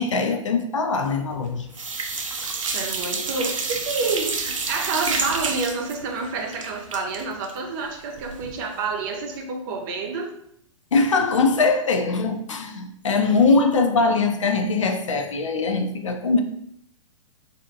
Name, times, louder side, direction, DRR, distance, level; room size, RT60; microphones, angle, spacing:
voice 1, 0.0-1.7 2.4-2.5 10.9-16.4, left 4 dB, 65° left, 0.5 m, -21 dB
sound 1, 1.1-1.5 1.7-8.6 8.9-9.0 9.3-9.4, right 4 dB, 75° right, 0.6 m, -29 dB
voice 2, 2.6-10.3, right 4 dB, 35° right, 0.7 m, -29 dB
4.1 x 2.7 x 2.7 m
figure-of-eight pair, 110°, 17 cm